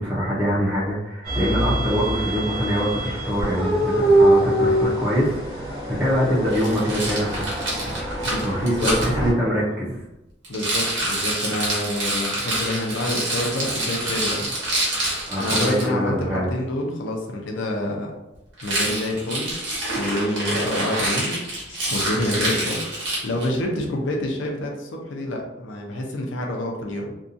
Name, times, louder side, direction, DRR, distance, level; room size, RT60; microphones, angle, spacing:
voice 1, 0.0-7.4 7.8-10.0 15.3-16.5, equal, 10° right, -9 dB, 0.5 m, -24 dB
sound 1, 1.2-9.3, right 1 dB, 30° right, 1.0 m, -24 dB
Rattle, 6.5-9.1 10.4-15.9 18.6-23.5, right 1 dB, 85° right, 1.0 m, -26 dB
voice 2, 8.2-8.9 10.5-14.5 15.4-18.1 18.6-19.5 20.0-21.4 21.7-27.1, left 1 dB, 80° left, 1 dB, 0.5 m, -27 dB
2.6 x 2.2 x 2.5 m, 0.93 s
head